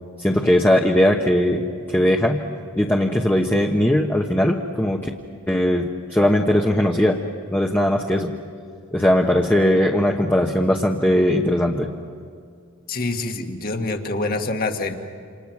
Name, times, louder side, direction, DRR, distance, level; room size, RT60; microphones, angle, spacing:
voice 1, 0.2-2.4 2.8-5.1 5.5-7.2 7.5-8.3 8.9-11.9, left 1 dB, 10° left, 0 dB, 1.1 m, -19 dB
voice 2, 12.9-14.9, left 2 dB, 45° left, 5 dB, 1.7 m, -26 dB
28.5 x 27.5 x 6.0 m, 2.2 s
head